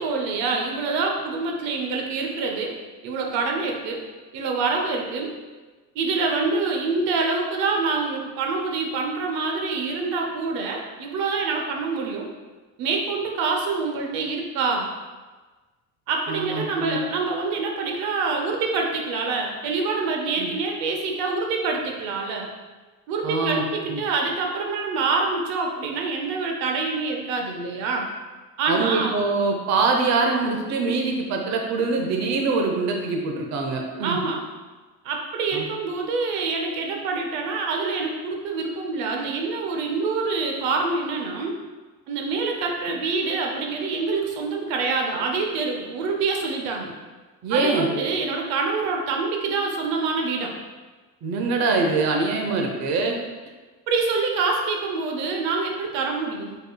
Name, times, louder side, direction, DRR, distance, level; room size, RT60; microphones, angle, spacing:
voice 1, 0.0-2.7 3.0-4.0 4.3-5.3 5.9-12.3 12.8-14.9 16.1-22.5 23.1-28.1 28.6-29.2 34.0-34.4 35.0-41.6 42.1-46.9 47.5-50.5 53.9-56.6, right 4 dB, 90° right, 1 dB, 0.8 m, -26 dB
voice 2, 16.3-17.0 20.4-20.5 23.2-23.6 23.9-24.0 28.7-34.2 35.5-35.7 47.4-47.9 51.2-53.2, right 3 dB, 55° right, 2 dB, 0.7 m, -24 dB
5.0 x 4.3 x 2.3 m, 1.3 s
cardioid pair, 140°, 34 cm